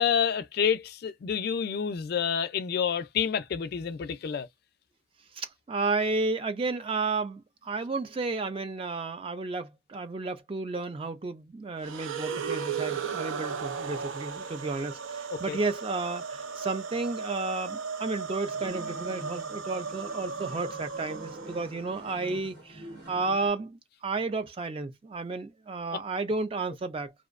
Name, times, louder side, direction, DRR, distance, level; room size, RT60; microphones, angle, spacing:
voice 1, 0.0-4.5 15.3-15.6, left 7 dB, 55° left, 0.3 m, -28 dB
voice 2, 5.3-27.1, right 3 dB, 30° right, 0.3 m, -32 dB
sound 1, 11.8-22.0, right 6 dB, 85° right, 0.5 m, -36 dB
sound 2, 18.5-23.5, right 1 dB, 55° right, 0.9 m, -46 dB
2.5 x 2.0 x 2.4 m
head